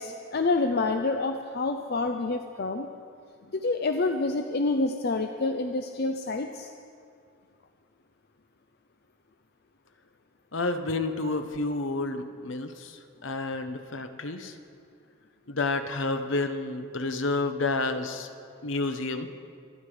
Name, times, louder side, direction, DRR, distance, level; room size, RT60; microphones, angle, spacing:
voice 1, 0.0-2.9 3.5-6.7, left 3 dB, 50° left, 5 dB, 0.6 m, -28 dB
voice 2, 10.5-14.6 15.5-18.3 18.6-19.3, left 3 dB, 65° left, 8 dB, 1.0 m, -30 dB
24.5 x 9.7 x 5.0 m, 2.3 s
head